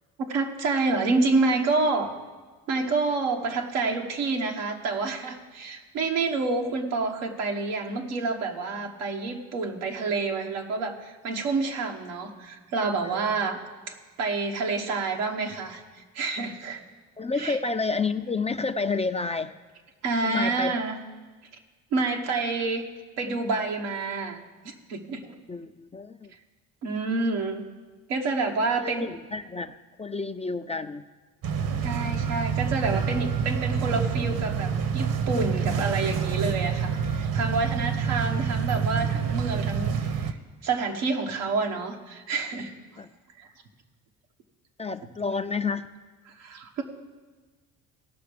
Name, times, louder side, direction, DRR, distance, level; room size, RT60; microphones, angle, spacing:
voice 1, 0.3-2.1 2.7-13.6 13.9-16.8 17.3-17.6 20.0-21.0 21.9-22.8 23.2-25.3 26.8-27.6 28.1-29.1 31.8-40.4 40.6-42.7 43.4-43.5 46.3-46.8, right 3 dB, 90° right, 1 dB, 1.3 m, -28 dB
voice 2, 17.2-19.5 20.2-20.7 25.5-26.3 28.8-31.0 43.0-43.1 44.8-45.9, left 4 dB, 15° left, 9 dB, 0.4 m, -30 dB
sound 1, 31.4-40.3, right 6 dB, 55° right, 1.1 m, -27 dB
17.0 x 5.9 x 5.1 m, 1.4 s
hypercardioid pair, 60°, 42 cm